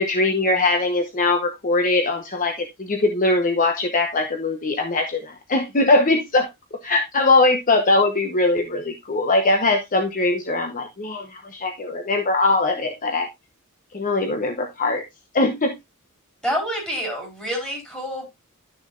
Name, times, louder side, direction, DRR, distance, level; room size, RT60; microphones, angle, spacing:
voice 1, 0.0-6.5 6.8-13.3 13.9-15.0 15.3-15.7, left 2 dB, 40° left, 0.9 m, -21 dB
voice 2, 16.4-18.3, equal, 5° left, 4.2 m, -27 dB
12.0 x 6.4 x 2.5 m
head